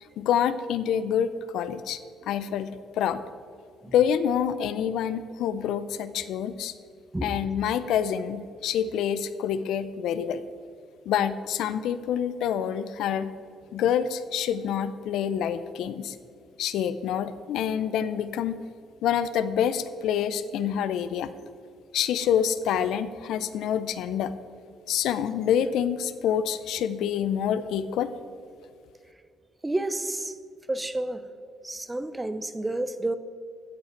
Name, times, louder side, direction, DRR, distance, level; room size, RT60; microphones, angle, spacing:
voice 1, 0.2-2.0 2.3-3.2 3.9-6.7 7.2-10.4 11.1-13.3 13.7-16.2 16.6-18.6 19.0-21.3 21.9-24.3 24.9-28.1, left 9 dB, 80° left, 13 dB, 0.4 m, -27 dB
voice 2, 29.6-30.3 30.7-31.3 31.6-33.2, right 2 dB, 15° right, 12 dB, 0.7 m, -30 dB
15.5 x 5.7 x 4.4 m, 2.4 s
supercardioid pair, 75°, 0 cm